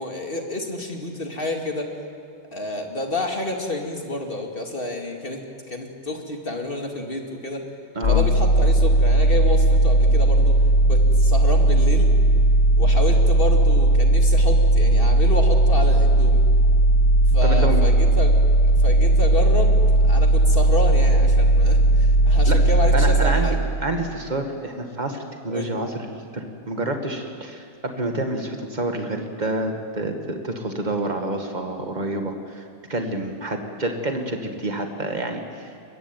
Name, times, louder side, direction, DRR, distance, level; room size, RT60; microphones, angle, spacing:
voice 1, 0.0-1.9 2.5-7.6 8.1-10.6 10.9-12.1 12.8-16.4 17.3-18.3 18.7-23.6 25.5-25.7, left 1 dB, 30° left, 2 dB, 2.6 m, -29 dB
sound 1, 8.0-23.8, right 1 dB, 45° left, 1.0 m, -17 dB
voice 2, 17.4-17.8 22.5-22.6 22.9-25.2 25.4-32.6 32.9-35.7, right 2 dB, 20° right, 4 dB, 2.2 m, -28 dB
22.5 x 22.0 x 9.2 m, 2.3 s
omnidirectional pair, 2.1 m